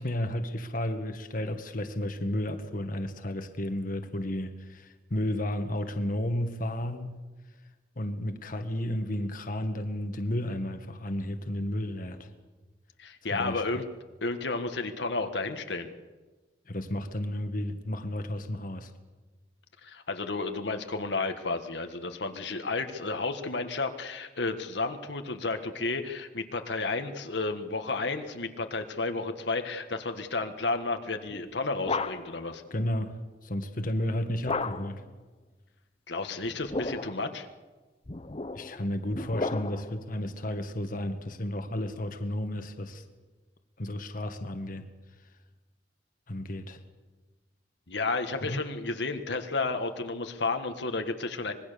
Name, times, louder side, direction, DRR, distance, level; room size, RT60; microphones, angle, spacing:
voice 1, 0.0-7.2 7.9-12.3 13.3-13.6 16.7-18.9 32.7-33.2 33.4-35.0 38.5-43.0 43.8-44.9 46.3-46.8 48.4-48.6, left 1 dB, 50° left, 7 dB, 1.6 m, -32 dB
voice 2, 13.0-13.8 14.2-15.9 19.8-32.6 36.1-37.5 47.9-51.5, left 3 dB, 80° left, 6 dB, 1.7 m, -32 dB
sound 1, 31.3-32.5 34.5-35.1 36.4-37.3 38.0-40.0, left 3 dB, 35° left, 0.8 m, -34 dB
25.5 x 21.5 x 6.9 m, 1.3 s
head